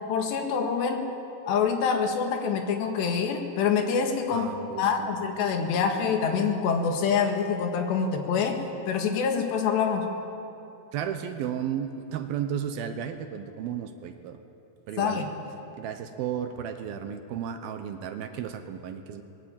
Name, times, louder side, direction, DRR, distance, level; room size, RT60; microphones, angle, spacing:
voice 1, 0.1-1.1 1.5-4.5 4.8-8.6 8.9-10.1 15.0-15.3, left 6 dB, 85° left, 4 dB, 4.0 m, -26 dB
voice 2, 4.3-5.1 10.9-14.4 14.9-15.2 15.8-19.2, right 9 dB, 75° right, 8 dB, 2.6 m, -33 dB
20.0 x 19.5 x 8.8 m, 2.9 s
omnidirectional pair, 4.8 m